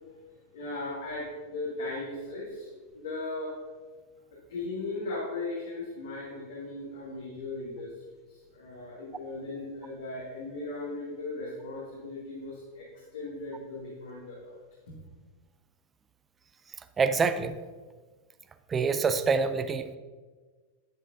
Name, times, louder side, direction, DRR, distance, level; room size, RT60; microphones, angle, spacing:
voice 1, 0.5-2.7 2.9-3.5 4.3-7.9 8.3-14.6 14.9-15.0, left 2 dB, 60° left, -6 dB, 2.1 m, -37 dB
voice 2, 17.0-17.5 18.7-19.9, right 5 dB, 20° right, 11 dB, 0.5 m, -26 dB
10.0 x 9.3 x 2.7 m, 1.4 s
figure-of-eight pair, 90°, 0 cm